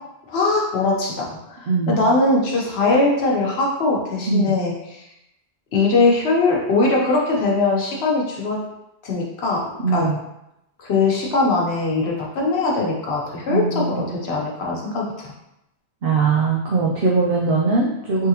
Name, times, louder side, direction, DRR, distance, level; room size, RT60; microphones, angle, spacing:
voice 1, 0.3-5.0 5.7-8.6 9.0-9.6 9.9-10.1 10.8-15.3, left 3 dB, 75° left, -2 dB, 1.1 m, -21 dB
voice 2, 1.7-2.1 4.3-4.5 9.8-10.2 13.5-14.0 16.0-18.3, right 4 dB, 65° right, -3 dB, 0.8 m, -20 dB
3.6 x 3.5 x 2.8 m, 0.86 s
omnidirectional pair, 1.1 m